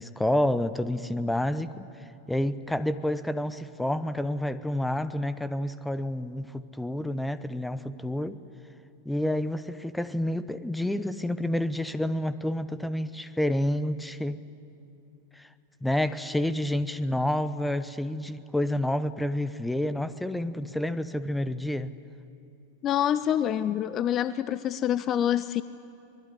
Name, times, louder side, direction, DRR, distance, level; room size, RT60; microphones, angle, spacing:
voice 1, 0.0-1.9 2.3-8.4 9.0-14.4 15.3-15.5 15.8-21.9, left 1 dB, 5° left, 15 dB, 0.8 m, -29 dB
voice 2, 22.8-25.6, left 10 dB, 30° left, 15 dB, 0.5 m, -26 dB
24.0 x 20.5 x 9.8 m, 2.6 s
figure-of-eight pair, 90°, 0 cm